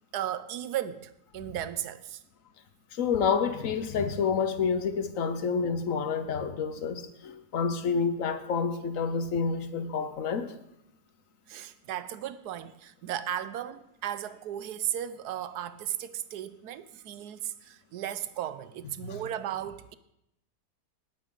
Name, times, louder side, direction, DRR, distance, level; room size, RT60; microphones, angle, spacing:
voice 1, 0.1-2.2 11.5-20.0, right 11 dB, 85° right, 1.2 m, -35 dB
voice 2, 2.9-10.5 19.0-19.2, left 6 dB, 60° left, 1.3 m, -29 dB
19.5 x 8.4 x 3.8 m
omnidirectional pair, 1.7 m